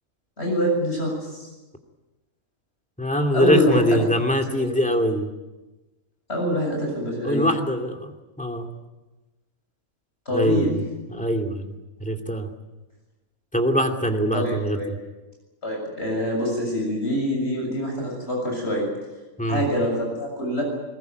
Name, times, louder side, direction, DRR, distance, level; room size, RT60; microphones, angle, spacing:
voice 1, 0.4-1.5 3.3-4.0 4.6-4.7 6.3-7.5 10.3-10.7 14.3-14.9 15.6-18.9 19.5-20.6, equal, 50° left, 0 dB, 7.6 m, -25 dB
voice 2, 3.0-5.3 7.2-8.7 10.3-10.8 11.1-11.7 12.0-12.5 13.5-15.0 19.4-19.6, equal, 5° left, 3 dB, 2.6 m, -23 dB
22.5 x 20.5 x 9.4 m, 1.1 s
omnidirectional pair, 1.4 m